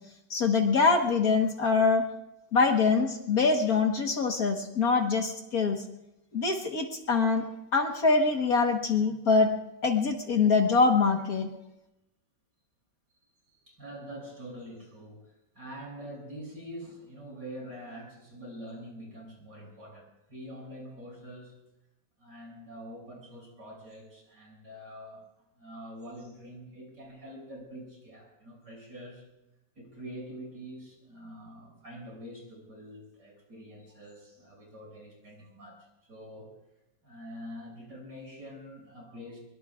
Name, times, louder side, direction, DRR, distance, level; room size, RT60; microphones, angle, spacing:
voice 1, 0.3-2.1 2.5-5.8 6.3-7.5 7.7-9.5 9.8-11.5, left 4 dB, 55° left, 3 dB, 1.7 m, -24 dB
voice 2, 13.5-21.6 22.2-25.2 25.6-29.2 29.8-36.6 37.0-39.4, equal, 60° right, -2 dB, 7.4 m, -45 dB
23.5 x 23.0 x 2.4 m, 0.89 s
omnidirectional pair, 2.0 m